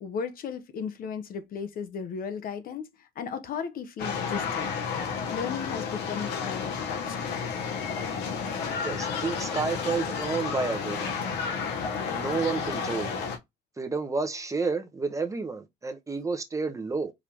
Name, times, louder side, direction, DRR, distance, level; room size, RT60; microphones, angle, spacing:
voice 1, 0.0-4.8 5.3-7.4, left 6 dB, 60° left, 0.9 m, -35 dB
sound 1, 4.0-13.4, left 6 dB, 80° left, 1.4 m, -31 dB
voice 2, 8.8-11.6 12.1-13.2 13.8-17.1, right 4 dB, 20° right, 0.8 m, -31 dB
4.9 x 2.7 x 3.5 m
cardioid pair, 110°, 17 cm